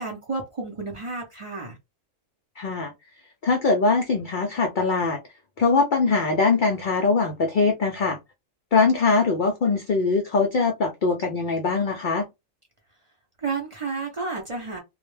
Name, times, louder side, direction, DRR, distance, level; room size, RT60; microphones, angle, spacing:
voice 1, 0.0-1.8 13.4-14.8, right 4 dB, 45° right, 0.4 m, -31 dB
voice 2, 2.6-2.9 3.4-5.2 5.6-8.2 8.7-12.2, left 4 dB, 65° left, 0.5 m, -22 dB
2.2 x 2.1 x 3.1 m
omnidirectional pair, 1.3 m